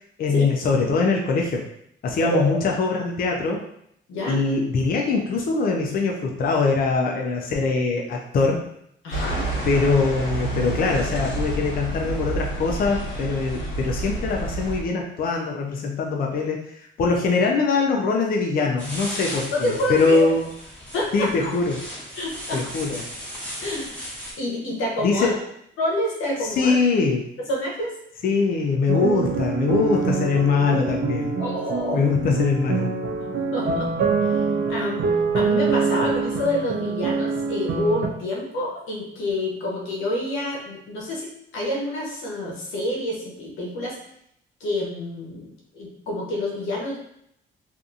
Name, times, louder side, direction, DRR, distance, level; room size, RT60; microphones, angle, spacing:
voice 1, 0.2-1.6 2.0-3.6 4.3-8.6 9.7-20.5 21.1-21.8 22.5-23.0 25.0-25.3 26.6-27.3 28.2-31.3 31.9-32.9, left 4 dB, 45° left, 0 dB, 0.4 m, -22 dB
voice 2, 2.3-2.7 4.1-4.4 9.0-9.5 19.5-20.2 20.9-21.3 22.1-22.6 23.6-24.0 24.4-25.3 25.8-26.8 27.4-27.9 31.4-32.0 33.5-33.9 34.2-34.4 34.7-44.0 44.6-47.0, left 1 dB, 90° left, -3 dB, 0.8 m, -28 dB
sound 1, 9.1-14.8, right 1 dB, 65° left, 1.0 m, -29 dB
sound 2, 18.8-24.3, equal, 5° left, 1.1 m, -36 dB
sound 3, 28.9-38.1, right 4 dB, 60° right, 0.5 m, -25 dB
2.7 x 2.5 x 2.4 m, 0.73 s
cardioid pair, 90°, 20 cm